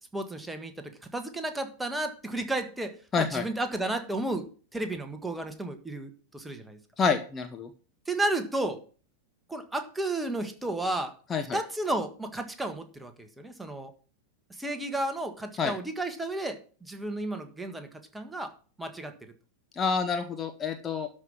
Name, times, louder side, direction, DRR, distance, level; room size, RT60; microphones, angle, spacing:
voice 1, 0.1-2.9 3.2-4.4 4.7-6.8 8.1-8.8 9.5-11.1 11.5-13.9 14.6-17.9 18.1-18.5 18.8-19.1, right 2 dB, 5° right, 7 dB, 1.6 m, -32 dB
voice 2, 3.1-3.4 7.0-7.7 11.3-11.6 15.6-15.7 19.8-21.1, left 5 dB, 20° left, 7 dB, 1.1 m, -28 dB
12.5 x 5.4 x 6.1 m, 0.39 s
figure-of-eight pair, 90°, 0 cm